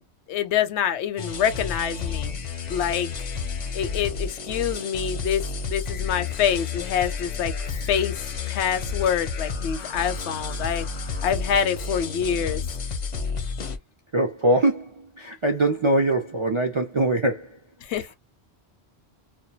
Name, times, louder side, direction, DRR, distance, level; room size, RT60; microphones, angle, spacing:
voice 1, 0.3-2.4 2.7-3.1 3.7-7.5 7.9-8.2 8.5-10.9 11.2-12.6 17.8-18.1, left 8 dB, 85° left, 0.9 m, -26 dB
sound 1, 1.2-13.8, left 5 dB, 50° left, 0.5 m, -31 dB
voice 2, 14.1-17.5, right 1 dB, 55° right, 0.3 m, -22 dB
2.2 x 2.2 x 2.7 m
omnidirectional pair, 1.1 m